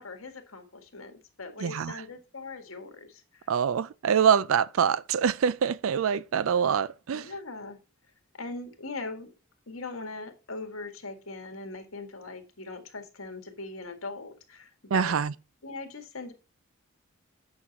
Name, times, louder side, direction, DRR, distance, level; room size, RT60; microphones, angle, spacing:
voice 1, 0.0-3.5 7.1-7.8 8.3-9.3 9.7-15.2 15.6-16.3, left 3 dB, 80° left, 1.9 m, -40 dB
voice 2, 1.6-1.9 3.5-7.3 14.9-15.3, right 7 dB, 70° right, 0.4 m, -25 dB
8.5 x 6.3 x 4.0 m
head